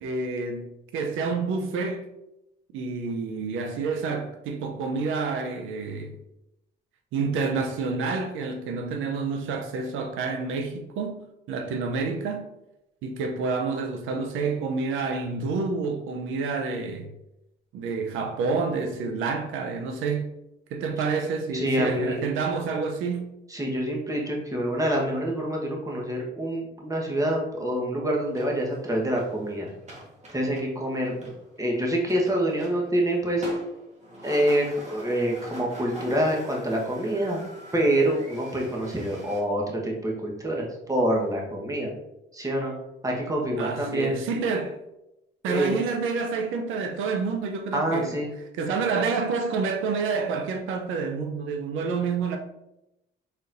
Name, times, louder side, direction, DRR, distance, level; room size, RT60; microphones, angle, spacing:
voice 1, 0.0-2.1 2.7-6.1 7.1-11.2 11.5-12.5 13.0-17.1 17.7-20.3 20.7-23.3 43.6-44.8 45.4-48.1 48.6-52.4, right 4 dB, 90° right, 0.5 m, -28 dB
voice 2, 21.5-22.2 23.5-29.7 30.3-31.3 31.6-33.5 34.2-37.4 37.7-41.9 42.3-42.7 43.0-44.2 45.4-45.7 47.7-48.3, right 1 dB, 15° right, 1.1 m, -26 dB
sound 1, 28.3-39.4, equal, 35° right, 1.2 m, -42 dB
4.2 x 3.9 x 2.5 m
cardioid pair, 90°, 20 cm